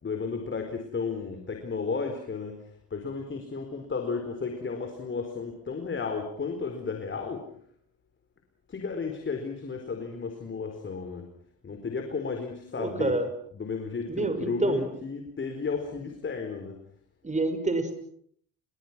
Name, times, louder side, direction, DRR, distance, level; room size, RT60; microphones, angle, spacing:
voice 1, 0.0-2.6 2.9-7.5 8.7-11.3 11.6-13.1 13.5-16.8, left 5 dB, 40° left, 4 dB, 4.5 m, -33 dB
voice 2, 12.8-13.3 14.1-14.9 17.2-17.9, right 2 dB, 25° right, 9 dB, 5.9 m, -27 dB
30.0 x 24.0 x 6.2 m, 0.63 s
cardioid pair, 90°, 30 cm